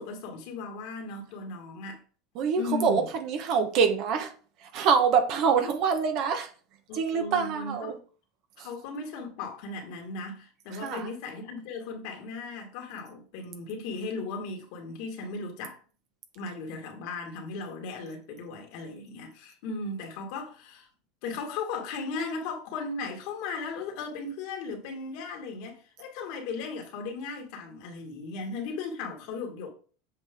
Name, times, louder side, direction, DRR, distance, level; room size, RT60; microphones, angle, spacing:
voice 1, 0.0-2.0 2.6-3.1 5.6-5.7 6.9-8.0 8.6-15.8 16.4-20.9 21.2-29.7, left 4 dB, 65° left, 2.1 m, -37 dB
voice 2, 2.3-4.3 4.6-6.5 6.9-7.9 8.6-8.7 10.8-11.1, right 6 dB, 50° right, 1.4 m, -25 dB
7.6 x 4.5 x 3.8 m
supercardioid pair, 135°, 0 cm